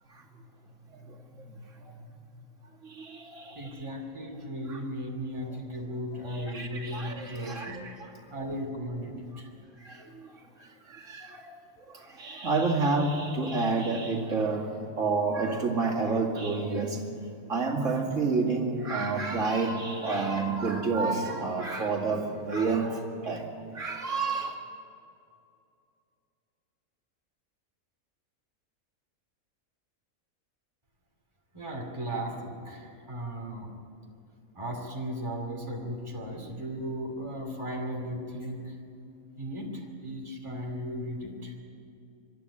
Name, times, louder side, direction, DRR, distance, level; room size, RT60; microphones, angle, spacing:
voice 1, 2.8-3.7 4.7-4.8 6.3-8.1 9.8-10.3 10.9-11.5 12.2-14.7 15.0-17.0 17.5-24.5, right 3 dB, 60° right, 0 dB, 2.7 m, -29 dB
voice 2, 3.5-7.8 8.3-9.5 10.0-10.1 31.5-33.7 34.5-38.8 39.4-41.6, equal, 20° right, 0 dB, 2.6 m, -36 dB
24.0 x 12.5 x 9.8 m, 2.6 s
omnidirectional pair, 1.5 m